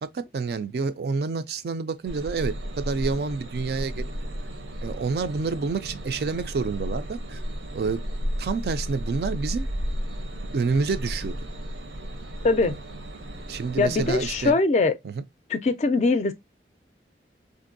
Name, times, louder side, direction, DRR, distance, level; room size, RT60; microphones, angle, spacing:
voice 1, 0.0-4.1 4.8-7.4 7.7-8.1 8.4-9.7 10.5-11.4 12.6-12.8 13.5-14.6 15.0-15.2, right 4 dB, 60° right, 0.3 m, -28 dB
sound 1, 2.1-14.5, equal, 80° right, 0.7 m, -34 dB
voice 2, 13.8-14.9 15.5-16.3, left 3 dB, 40° left, 0.3 m, -22 dB
3.6 x 2.6 x 2.5 m
head